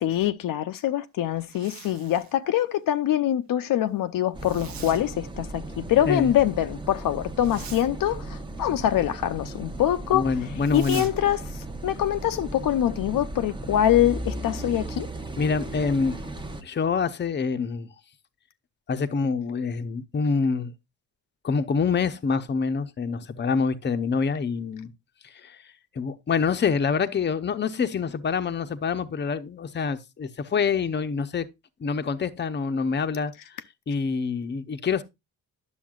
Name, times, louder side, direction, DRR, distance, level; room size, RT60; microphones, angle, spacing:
voice 1, 0.0-10.3 10.7-11.4 11.8-15.1, left 12 dB, 70° left, 0.6 m, -24 dB
Zipper (clothing), 1.3-2.4 4.4-5.0 7.3-7.9 10.6-11.1, right 8 dB, 85° right, 1.1 m, -43 dB
Car passing by / Idling / Accelerating revving vroom, 4.3-16.6, right 2 dB, 15° right, 0.8 m, -36 dB
voice 2, 10.1-11.1 15.4-16.2 16.6-17.9 18.9-20.7 21.4-24.9 25.4-25.6 26.0-31.5 31.8-33.3 33.9-35.0, left 5 dB, 30° left, 0.7 m, -26 dB
10.0 x 7.0 x 2.3 m
cardioid pair, 120°, 35 cm